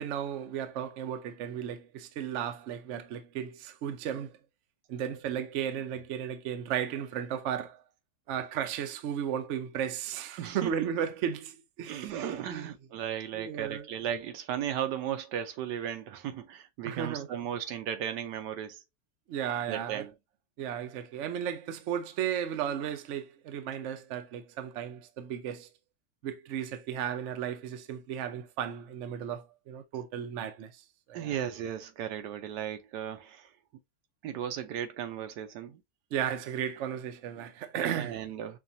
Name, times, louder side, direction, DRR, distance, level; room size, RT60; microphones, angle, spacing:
voice 1, 0.0-4.4 4.9-7.8 8.3-12.7 13.3-13.9 16.8-17.3 19.3-20.1 20.6-25.7 26.2-31.4 36.1-38.2, right 9 dB, 60° right, 0.8 m, -35 dB
voice 2, 10.4-10.7 11.9-18.8 19.7-20.1 31.1-33.5 34.2-35.8 38.0-38.6, right 9 dB, 80° right, 1.3 m, -36 dB
5.7 x 2.3 x 2.6 m
omnidirectional pair, 1.8 m